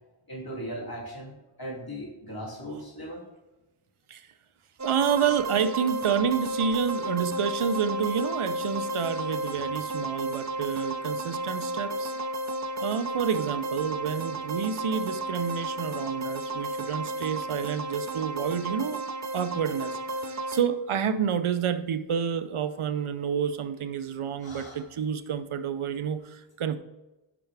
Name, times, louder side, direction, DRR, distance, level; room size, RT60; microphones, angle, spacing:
voice 1, 0.3-3.2 9.0-9.3 10.7-10.8 23.2-23.4 24.4-24.9, equal, 45° left, -2 dB, 2.7 m, -39 dB
sound 1, 4.8-20.6, right 2 dB, 35° right, 0.7 m, -33 dB
voice 2, 4.8-12.1 12.8-19.0 19.3-20.0 20.3-26.8, right 7 dB, 85° right, 11 dB, 0.7 m, -29 dB
9.9 x 5.9 x 3.4 m, 1.0 s
wide cardioid pair, 45°, 49 cm